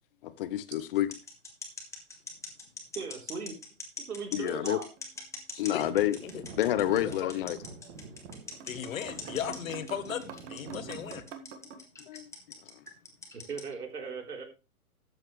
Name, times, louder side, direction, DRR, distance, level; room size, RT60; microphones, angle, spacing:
voice 1, 0.2-1.1 4.3-4.8 5.6-6.2 6.6-7.6 12.1-12.3, left 13 dB, 40° left, 0.9 m, -28 dB
sound 1, 0.9-13.7, left 3 dB, 5° left, 1.7 m, -42 dB
voice 2, 2.9-3.6 4.1-4.9 7.3-7.4 13.3-14.4, right 5 dB, 85° right, 3.8 m, -38 dB
sound 2, 4.3-5.5 5.8-5.9 7.3-7.5 8.1-8.2 8.5-11.8, right 6 dB, 50° right, 1.9 m, -46 dB
voice 3, 5.5-6.4 7.0-7.3 8.6-11.2, left 9 dB, 65° left, 1.5 m, -37 dB
sound 3, 5.8-11.2, right 4 dB, 30° right, 2.1 m, -47 dB
13.0 x 8.7 x 3.2 m
hypercardioid pair, 140°, 44 cm